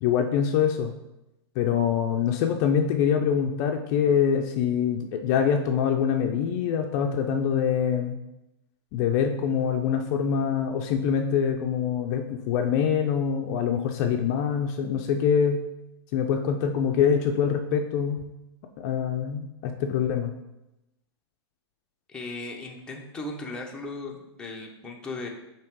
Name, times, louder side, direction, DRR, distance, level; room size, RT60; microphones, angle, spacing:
voice 1, 0.0-0.9 1.6-8.2 8.9-15.6 16.1-18.2 18.8-20.3, left 7 dB, 40° left, 4 dB, 0.5 m, -24 dB
voice 2, 22.1-25.3, left 2 dB, 5° left, -1 dB, 0.7 m, -37 dB
7.0 x 2.9 x 4.6 m, 0.93 s
hypercardioid pair, 140°, 14 cm